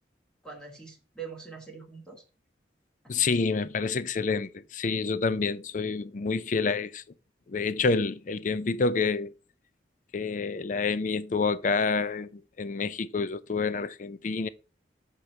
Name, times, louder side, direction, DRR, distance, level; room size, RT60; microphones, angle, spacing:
voice 1, 0.4-2.2 3.0-3.5, right 5 dB, 5° left, 1.3 m, -44 dB
voice 2, 3.1-7.0 7.5-9.3 10.1-14.5, left 4 dB, 45° left, 0.4 m, -28 dB
6.6 x 4.5 x 5.3 m
head